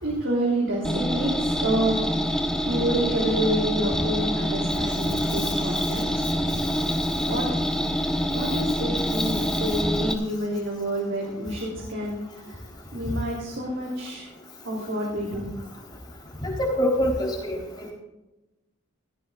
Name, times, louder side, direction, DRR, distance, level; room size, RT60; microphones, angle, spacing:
voice 1, 0.0-2.1 2.6-6.2 7.2-7.5 8.3-14.3 14.6-15.6, right 1 dB, 75° right, -3 dB, 3.2 m, -28 dB
sound 1, 0.8-10.1, equal, 5° left, 1.0 m, -26 dB
voice 2, 16.4-17.9, equal, 20° left, -1 dB, 3.7 m, -25 dB
17.0 x 14.5 x 2.4 m, 1.0 s
head